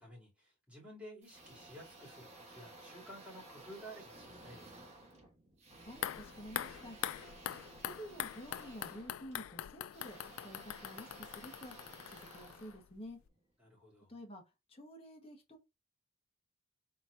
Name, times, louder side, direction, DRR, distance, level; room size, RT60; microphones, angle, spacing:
voice 1, 0.0-4.8 13.6-14.1, equal, 5° right, 2.9 m, -53 dB
sound 1, 1.2-13.4, right 2 dB, 35° right, 1.3 m, -56 dB
voice 2, 5.7-7.0 7.8-11.7 12.1-13.2 14.1-14.4 14.7-15.6, equal, 30° left, 1.3 m, -50 dB
sound 2, 5.9-13.0 13.3-13.4, left 11 dB, 90° left, 0.3 m, -43 dB
4.5 x 4.1 x 2.6 m
head